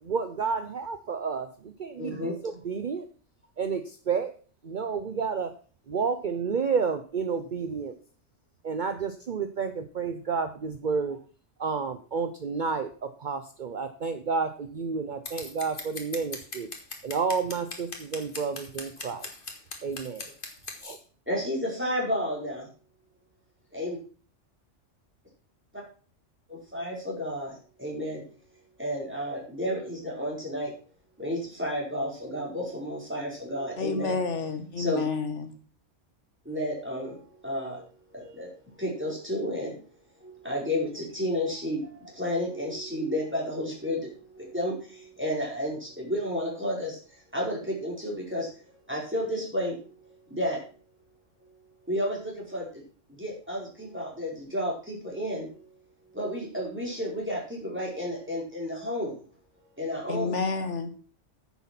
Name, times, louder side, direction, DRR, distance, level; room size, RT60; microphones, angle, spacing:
voice 1, 0.0-3.1 3.6-4.3 4.6-5.5 5.9-7.9 8.6-11.2 11.6-16.7 17.0-19.3 19.8-20.3 20.8-21.0, right 5 dB, 45° right, 9 dB, 0.9 m, -30 dB
voice 2, 2.0-2.3 21.3-22.7 23.7-24.0 26.5-27.5 27.8-28.2 28.8-30.7 31.2-34.2 34.8-35.1 36.5-37.2 37.4-37.8 38.1-38.5 38.8-39.7 40.2-47.0 47.3-48.5 48.9-49.8 50.3-50.6 51.9-52.6 53.2-55.5 56.1-59.1 59.8-60.4, equal, 10° right, -3 dB, 4.7 m, -31 dB
Scissors, 15.3-20.8, left 3 dB, 45° left, 2.1 m, -39 dB
voice 3, 33.8-35.5 60.1-60.9, left 4 dB, 75° left, 8 dB, 1.6 m, -29 dB
9.9 x 8.3 x 6.0 m, 0.41 s
omnidirectional pair, 1.2 m